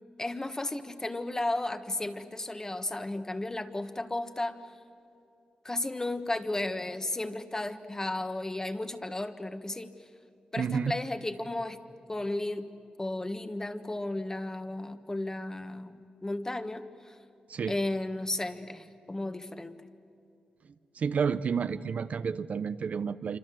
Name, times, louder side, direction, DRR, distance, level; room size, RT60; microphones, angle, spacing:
voice 1, 0.2-4.6 5.6-9.9 10.5-11.8 12.1-12.7 13.0-17.2 17.7-19.8, left 2 dB, 20° left, 9 dB, 1.5 m, -34 dB
voice 2, 10.6-11.0 17.5-17.8 20.9-23.4, right 6 dB, 65° right, 12 dB, 0.7 m, -30 dB
27.0 x 25.5 x 7.7 m, 2.6 s
cardioid pair, 75°, 3 cm